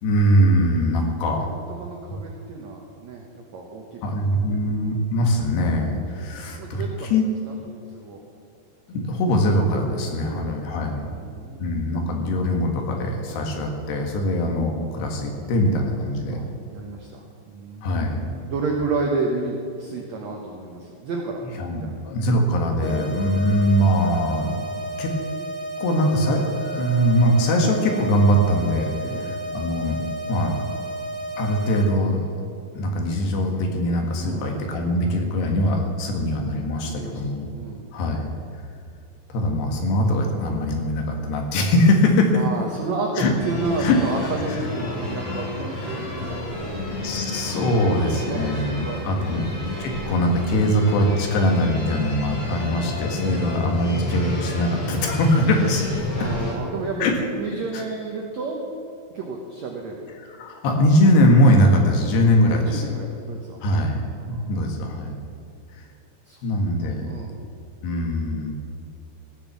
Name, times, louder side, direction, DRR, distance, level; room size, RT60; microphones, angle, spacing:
voice 1, 0.0-1.4 4.0-7.3 8.9-11.1 11.6-16.4 17.8-18.2 21.6-24.6 25.0-25.1 25.8-30.0 30.3-30.6 31.4-32.3 32.8-37.5 37.9-38.3 39.3-42.4 43.2-43.3 43.8-44.0 46.1-46.2 47.0-49.5 49.8-55.9 56.2-56.3 57.0-57.1 57.7-57.8 60.2-62.9 63.6-64.0 64.3-65.1 65.8-65.9 66.4-67.1 67.8-68.5, equal, 80° left, 2 dB, 3.7 m, -22 dB
voice 2, 1.4-3.3 3.5-4.0 4.5-4.6 6.1-7.2 7.5-8.2 10.2-10.6 11.0-11.7 16.3-17.9 18.1-21.4 21.8-21.9 22.8-22.9 29.0-29.3 34.2-34.5 36.8-37.2 37.5-37.8 42.4-46.7 48.1-49.4 53.2-53.5 56.1-58.7 59.1-60.0 62.4-63.6 64.2-64.5 66.3-66.4 67.0-67.3, right 3 dB, 75° right, 0 dB, 1.6 m, -31 dB
sound 1, 22.8-31.8, right 1 dB, 20° left, 1.4 m, -32 dB
sound 2, 43.4-56.5, left 1 dB, 45° left, 4.0 m, -30 dB
15.5 x 7.3 x 7.3 m, 2.5 s
omnidirectional pair, 4.8 m